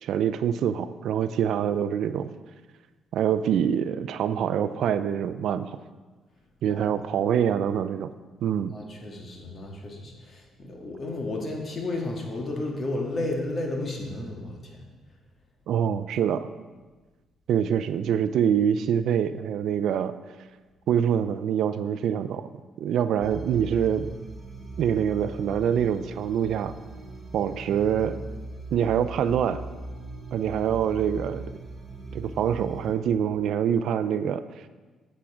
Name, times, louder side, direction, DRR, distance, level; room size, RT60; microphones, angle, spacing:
voice 1, 0.0-2.3 3.1-5.7 6.6-8.1 8.4-8.7 15.7-16.5 17.5-20.1 20.9-22.5 22.8-24.1 24.8-26.7 27.3-28.2 28.7-29.6 30.3-31.5 32.1-34.4, right 8 dB, 75° right, 12 dB, 0.4 m, -25 dB
voice 2, 8.7-14.9, left 2 dB, 45° left, 0 dB, 1.9 m, -32 dB
sound 1, 23.2-32.9, right 2 dB, 40° right, 1.8 m, -39 dB
8.4 x 7.3 x 5.0 m, 1.3 s
cardioid pair, 90°, 0 cm